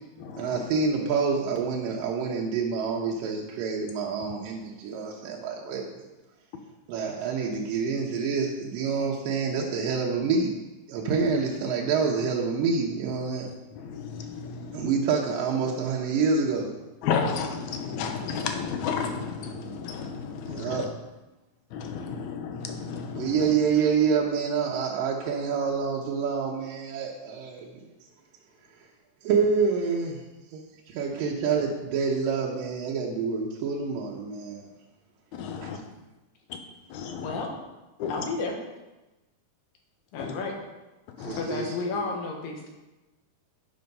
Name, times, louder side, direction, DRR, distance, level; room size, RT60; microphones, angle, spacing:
voice 1, 0.4-5.9 6.9-10.6 10.9-13.5 14.7-16.7 20.5-20.9 23.1-27.8 29.2-30.2 30.5-34.7 35.6-35.7 41.2-41.9, right 5 dB, 85° right, -2 dB, 2.6 m, -27 dB
voice 2, 13.9-14.7 17.0-20.8 21.7-23.3 35.3-35.8 36.9-37.3 38.0-38.1 40.2-40.3 41.2-41.4, left 6 dB, 70° left, 5 dB, 2.0 m, -32 dB
voice 3, 37.2-37.5 38.1-38.5 40.1-40.6 41.3-42.7, left 4 dB, 90° left, 1 dB, 3.0 m, -32 dB
8.6 x 5.8 x 5.3 m, 1.1 s
omnidirectional pair, 3.8 m